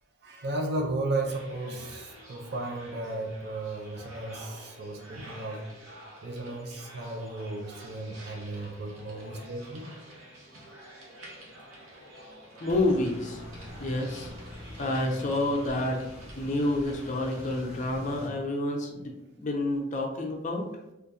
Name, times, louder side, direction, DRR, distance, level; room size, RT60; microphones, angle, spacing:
voice 1, 0.2-5.6 6.2-9.9, right 2 dB, 55° right, 2 dB, 0.5 m, -34 dB
sound 1, 1.2-17.6, right 1 dB, 85° right, 0.8 m, -48 dB
voice 2, 12.6-13.4 13.8-14.3 14.8-16.0 16.4-20.6, left 1 dB, 35° left, 1 dB, 0.5 m, -29 dB
sound 2, 12.7-18.3, left 1 dB, 35° right, 1.3 m, -44 dB
3.7 x 2.5 x 2.7 m, 0.92 s
head